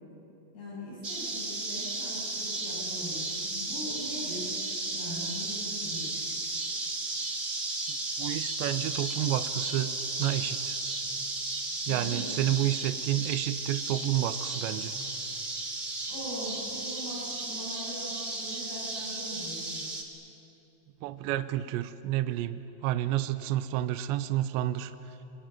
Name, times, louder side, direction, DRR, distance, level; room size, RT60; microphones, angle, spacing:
voice 1, 0.5-6.1 11.8-12.5 16.1-19.8, equal, 55° left, -6 dB, 9.4 m, -41 dB
sound 1, 1.0-20.0, right 2 dB, 30° right, 1.0 m, -34 dB
voice 2, 8.2-9.9 10.2-10.7 11.9-14.9 21.0-24.9, right 13 dB, 80° right, 12 dB, 2.8 m, -30 dB
27.0 x 23.5 x 9.2 m, 3.0 s
omnidirectional pair, 5.7 m